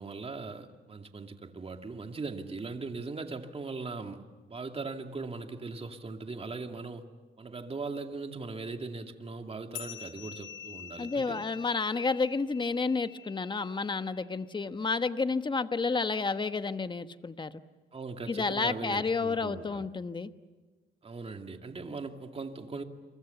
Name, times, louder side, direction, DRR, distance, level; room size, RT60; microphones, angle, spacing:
voice 1, 0.0-4.2 4.5-7.0 7.4-11.4 17.9-19.8 21.0-22.8, right 3 dB, 30° right, 2.4 m, -39 dB
sound 1, 9.7-14.6, left 10 dB, 85° left, 1.2 m, -47 dB
voice 2, 11.0-17.6 18.3-20.3, left 4 dB, 25° left, 1.2 m, -30 dB
29.0 x 24.5 x 7.0 m
cardioid pair, 90°, 20 cm